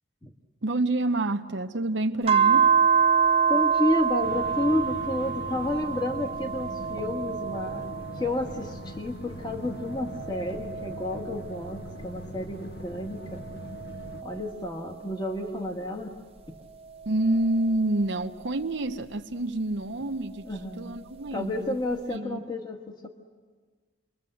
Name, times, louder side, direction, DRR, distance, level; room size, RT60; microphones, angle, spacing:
voice 1, 0.6-2.7 17.1-20.4 20.8-21.8 22.1-22.4, right 2 dB, 70° right, 6 dB, 0.8 m, -28 dB
sound 1, 2.3-9.0 9.4-12.3 12.9-15.7 16.4-18.9 20.2-21.3, right 6 dB, 30° right, 0.9 m, -28 dB
voice 2, 3.5-13.4 14.2-16.1 20.4-21.0 21.3-23.1, left 1 dB, 20° left, 4 dB, 1.5 m, -31 dB
sound 2, 4.2-14.2, left 1 dB, 55° left, 1.4 m, -41 dB
29.0 x 22.5 x 7.8 m, 1.5 s
head